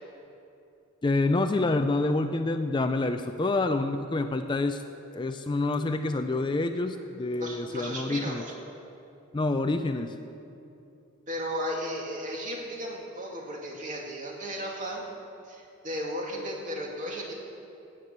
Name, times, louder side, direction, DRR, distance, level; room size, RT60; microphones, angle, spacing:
voice 1, 1.0-4.8 5.1-8.4 9.3-10.1, left 2 dB, 25° left, 8 dB, 0.4 m, -27 dB
voice 2, 7.4-8.5 11.3-15.0 15.4-17.3, equal, 40° right, -1 dB, 2.3 m, -35 dB
16.0 x 8.9 x 6.6 m, 2.8 s
head